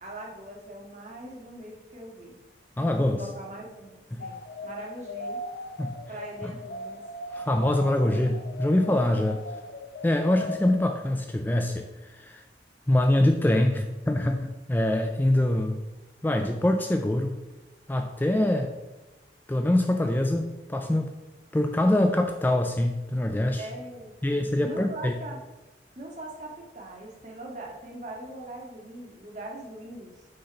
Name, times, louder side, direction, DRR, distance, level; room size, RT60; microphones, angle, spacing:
voice 1, 0.0-2.4 3.1-5.4 6.1-7.0 9.1-9.3 23.6-25.4 25.9-30.3, right 1 dB, 40° right, -2 dB, 1.6 m, -41 dB
voice 2, 2.8-3.2 4.1-4.2 5.8-5.9 6.4-6.5 7.3-9.4 10.0-11.9 12.1-12.4 12.9-15.8 16.2-17.4 17.9-18.7 19.5-21.1 21.5-23.7 24.2-25.1, left 1 dB, 10° left, 5 dB, 0.3 m, -24 dB
sound 1, 4.2-10.8, left 1 dB, 70° left, 0.7 m, -39 dB
6.4 x 4.1 x 5.6 m, 1.1 s
head